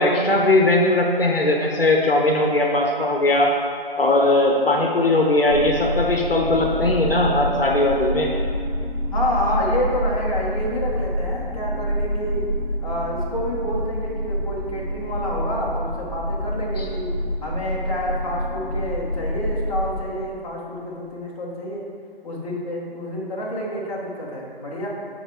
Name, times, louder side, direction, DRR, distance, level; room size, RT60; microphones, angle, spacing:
voice 1, 0.0-3.5 4.0-8.3 16.8-16.9, left 2 dB, 70° left, 0 dB, 1.2 m, -19 dB
sound 1, 5.5-19.9, equal, 45° right, 1.8 m, -27 dB
voice 2, 9.1-12.4 12.8-17.1 17.4-21.8 22.2-24.9, equal, 35° left, -5 dB, 1.3 m, -28 dB
7.7 x 4.7 x 4.8 m, 2.5 s
figure-of-eight pair, 155°, 30 cm